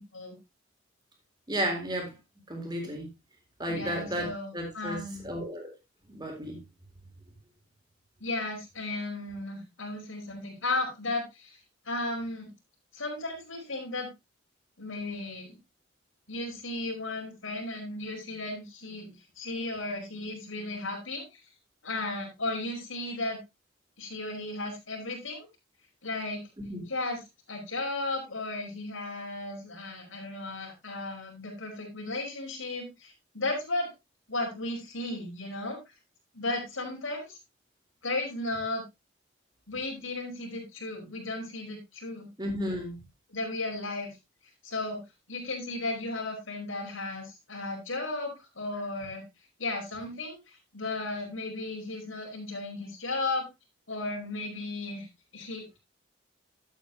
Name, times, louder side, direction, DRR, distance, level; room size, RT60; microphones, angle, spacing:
voice 1, 1.5-2.1 2.5-3.1 3.6-4.3 4.5-5.7 6.1-6.6 26.6-26.8 42.4-43.0, equal, 20° right, 2 dB, 3.8 m, -33 dB
voice 2, 3.7-5.2 8.2-11.6 11.8-12.5 12.9-14.1 14.8-15.6 16.3-21.2 21.8-23.4 24.0-25.5 26.0-26.4 26.9-27.2 27.5-33.9 34.3-35.8 36.3-37.4 38.0-38.8 39.7-42.3 43.3-44.2 44.6-45.0 45.3-49.2 49.6-50.4 50.7-53.5 53.9-55.1 55.3-55.8, left 2 dB, 85° left, 0 dB, 4.8 m, -35 dB
12.0 x 8.5 x 2.9 m, 0.22 s
head